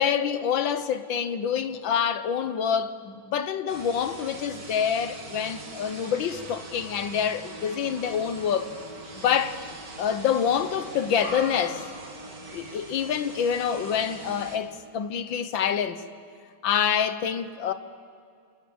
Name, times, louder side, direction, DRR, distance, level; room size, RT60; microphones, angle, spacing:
voice 1, 0.0-8.7 9.2-9.6 10.0-11.8 12.5-16.0 16.6-17.7, left 8 dB, 70° left, 1.8 m, -26 dB
sound 1, 3.7-14.6, right 2 dB, 45° right, 3.0 m, -41 dB
28.0 x 27.5 x 7.2 m
omnidirectional pair, 2.2 m